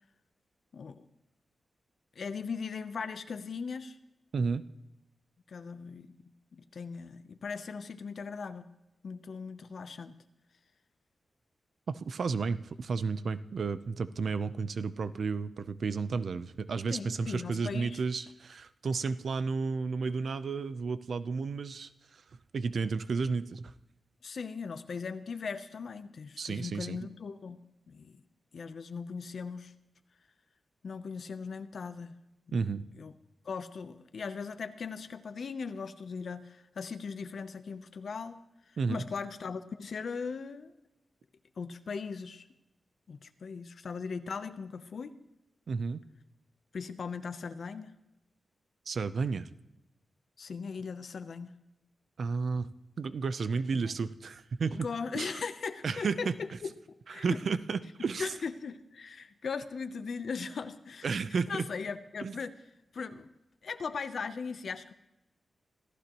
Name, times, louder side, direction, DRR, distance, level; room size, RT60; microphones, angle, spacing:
voice 1, 0.7-1.1 2.2-4.0 5.5-8.7 9.0-10.2 16.9-18.0 24.2-27.6 27.9-28.2 28.5-29.7 30.8-32.2 32.5-32.6 33.0-33.1 33.4-38.4 38.7-40.7 41.6-42.4 43.1-45.2 46.7-47.9 50.4-51.5 53.7-53.9 54.7-57.4 58.2-61.1 61.5-62.5 62.9-63.3 63.6-64.9, left 5 dB, 55° left, 10 dB, 0.7 m, -39 dB
voice 2, 4.3-4.6 11.9-22.2 22.5-23.7 26.4-27.0 32.5-32.8 38.8-39.0 45.7-46.0 48.9-49.5 52.2-52.7 53.0-54.9 55.1-55.4 55.8-56.3 57.1-58.3 61.0-61.7 62.2-62.4, right 4 dB, 60° right, 13 dB, 0.6 m, -32 dB
26.5 x 15.0 x 3.0 m, 0.95 s
wide cardioid pair, 155°, 0 cm